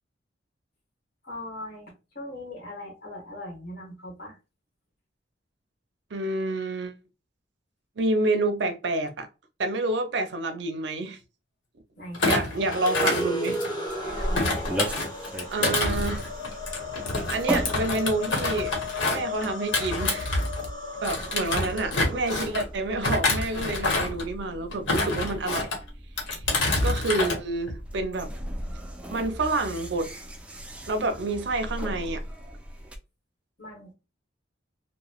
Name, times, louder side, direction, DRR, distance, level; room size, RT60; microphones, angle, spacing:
voice 1, 1.2-4.4 12.0-12.7 14.0-14.5 27.1-27.4 33.6-33.9, left 1 dB, 55° left, 1.4 m, -40 dB
voice 2, 6.1-7.0 8.0-9.3 9.6-11.2 12.3-13.6 14.1-14.3 15.5-16.2 17.3-18.7 19.1-20.4 21.0-25.7 26.8-28.3 29.1-30.1 30.9-32.2, right 2 dB, 65° right, 0.5 m, -28 dB
Thump thud, 12.1-13.9 14.3-20.7 21.0-22.6 23.0-24.3 24.7-25.8 26.2-27.4 27.7-28.0, left 2 dB, 90° left, 1.0 m, -27 dB
sound 1, 12.5-22.8, left 2 dB, 25° left, 1.0 m, -35 dB
sound 2, 13.9-33.0, equal, 5° right, 0.4 m, -37 dB
3.0 x 2.1 x 2.3 m
head